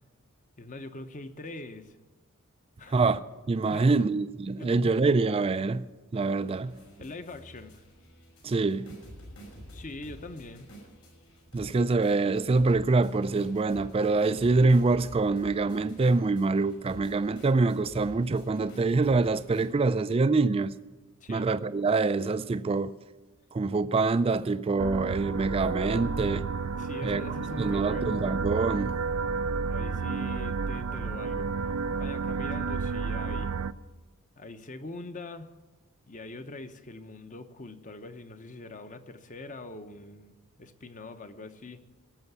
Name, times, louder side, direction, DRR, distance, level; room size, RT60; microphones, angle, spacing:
voice 1, 0.6-2.0 2.8-3.0 3.7-4.1 4.6-5.0 7.0-7.8 9.7-10.7 21.2-21.5 26.8-28.2 29.7-31.5 32.0-33.5 34.4-35.5 36.1-41.8, left 2 dB, 35° left, 0.9 m, -43 dB
voice 2, 2.9-5.8 6.1-6.7 8.4-8.9 11.5-20.7 21.3-22.9 23.5-26.5 27.0-27.2 27.6-29.0, right 3 dB, 25° right, 0.3 m, -25 dB
sound 1, 6.5-19.7, equal, 90° left, 5.7 m, -49 dB
sound 2, 24.8-33.7, right 5 dB, 85° right, 0.5 m, -31 dB
18.0 x 7.0 x 8.0 m
head